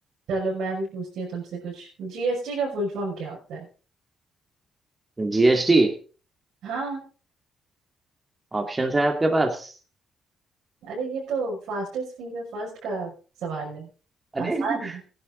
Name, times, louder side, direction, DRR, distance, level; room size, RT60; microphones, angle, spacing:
voice 1, 0.3-3.7 6.6-7.0 10.8-13.1 13.4-13.9 14.4-15.0, right 3 dB, 80° right, -5 dB, 6.1 m, -30 dB
voice 2, 5.2-5.9 8.5-9.7 14.3-14.9, right 2 dB, 20° right, 3 dB, 2.3 m, -22 dB
16.5 x 11.0 x 4.0 m, 0.37 s
cardioid pair, 110°, 0 cm